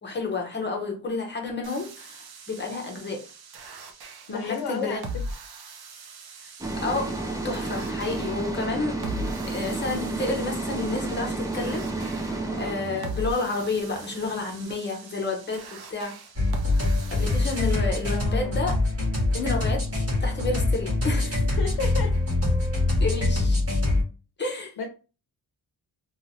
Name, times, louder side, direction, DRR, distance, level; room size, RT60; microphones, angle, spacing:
voice 1, 0.0-3.2 4.3-5.0 6.4-6.5 6.8-9.0 9.5-16.2 17.1-18.8 19.3-19.9 20.2-21.5 23.0-23.6 24.4-24.7, left 3 dB, 30° left, 0.8 m, -30 dB
sound 1, 1.6-17.8, right 1 dB, 70° right, 0.6 m, -40 dB
voice 2, 4.3-5.2 18.0-18.6 21.4-22.2 24.8-24.9, left 5 dB, 70° left, 0.7 m, -33 dB
sound 2, 6.6-14.6, right 2 dB, 10° right, 0.3 m, -32 dB
sound 3, 16.4-24.0, left 2 dB, 40° right, 1.5 m, -24 dB
3.0 x 2.4 x 2.6 m
wide cardioid pair, 160°, 39 cm